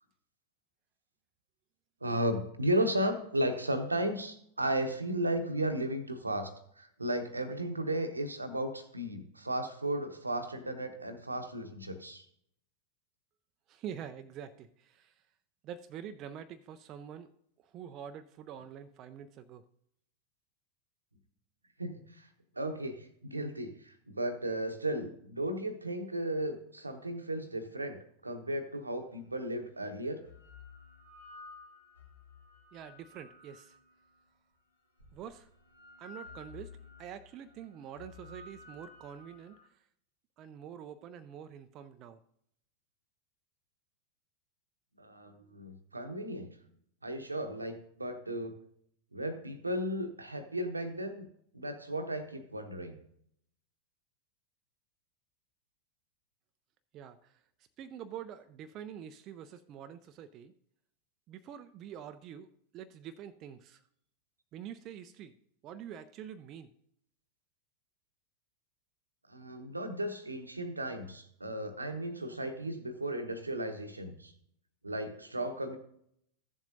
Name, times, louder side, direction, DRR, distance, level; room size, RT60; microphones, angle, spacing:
voice 1, 2.0-12.2 21.8-22.3 22.6-30.2 45.0-46.5 47.0-48.5 49.1-51.3 51.5-53.0 69.3-74.3 74.8-75.8, right 1 dB, 80° right, 7 dB, 0.9 m, -35 dB
voice 2, 13.7-15.2 15.6-17.3 17.6-19.6 32.7-33.8 35.1-35.5 36.0-39.8 40.4-42.2 56.9-57.4 57.8-60.5 61.3-63.8 64.5-65.3 65.6-66.7, right 9 dB, 35° right, 9 dB, 0.4 m, -46 dB
sound 1, 28.9-29.0 30.0-34.2 35.0-39.7, left 4 dB, 80° left, 1.5 m, -53 dB
14.5 x 7.2 x 2.6 m, 0.72 s
figure-of-eight pair, 90°, 0 cm